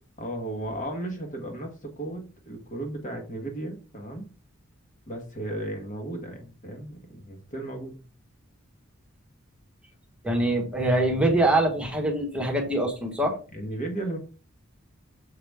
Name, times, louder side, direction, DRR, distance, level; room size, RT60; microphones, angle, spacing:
voice 1, 0.2-4.3 5.1-8.0 13.5-14.2, right 1 dB, 40° left, 3 dB, 1.4 m, -35 dB
voice 2, 10.2-13.4, right 1 dB, 5° right, 0 dB, 1.4 m, -24 dB
6.8 x 4.9 x 3.5 m, 0.34 s
head